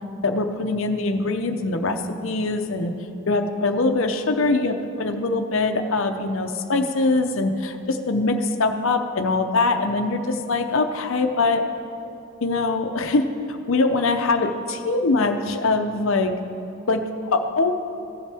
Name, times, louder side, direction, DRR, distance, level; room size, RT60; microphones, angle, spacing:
voice 1, 0.2-2.9 3.3-11.6 12.4-16.3 16.9-17.7, left 3 dB, 60° left, 6 dB, 0.7 m, -23 dB
15.5 x 7.3 x 3.4 m, 2.9 s
head